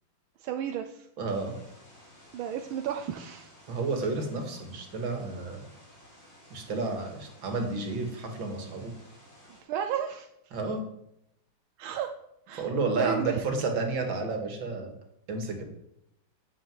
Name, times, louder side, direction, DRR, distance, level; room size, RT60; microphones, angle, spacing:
voice 1, 0.4-1.1 2.3-3.5 9.6-10.3 11.8-12.1 12.5-12.7 13.0-13.4, right 9 dB, 90° right, 6 dB, 1.6 m, -32 dB
voice 2, 1.2-1.5 3.7-5.6 6.5-8.9 10.5-10.8 12.5-14.9 15.3-15.6, right 3 dB, 70° right, 4 dB, 2.8 m, -31 dB
sound 1, 1.3-9.6, equal, 65° left, 4.8 m, -55 dB
9.4 x 8.4 x 7.5 m, 0.80 s
omnidirectional pair, 2.2 m